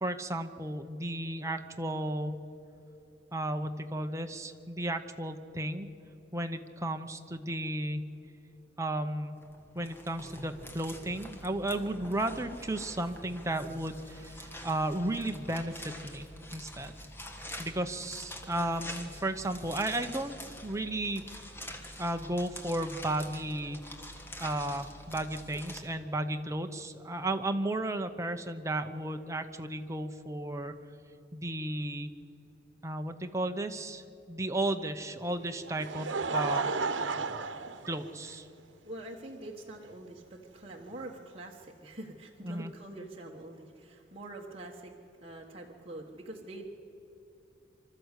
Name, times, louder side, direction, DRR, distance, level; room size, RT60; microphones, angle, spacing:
voice 1, 0.0-2.3 3.3-5.9 6.3-8.1 8.8-9.4 9.7-16.9 17.6-20.4 20.6-21.4 22.0-23.8 24.4-30.7 31.3-32.1 32.8-34.0 34.3-36.1 36.3-36.8 37.9-38.5 42.4-42.7, right 1 dB, 15° right, 6 dB, 0.9 m, -34 dB
sound 1, 9.3-25.8, left 1 dB, 10° left, 1.6 m, -46 dB
voice 2, 18.4-18.7 37.1-37.9 38.5-46.6, right 1 dB, 30° right, -2 dB, 1.4 m, -46 dB
Laughter, 35.4-38.6 39.4-39.5 41.0-41.1, right 4 dB, 80° right, 1.0 m, -33 dB
25.5 x 13.0 x 8.3 m, 2.8 s
head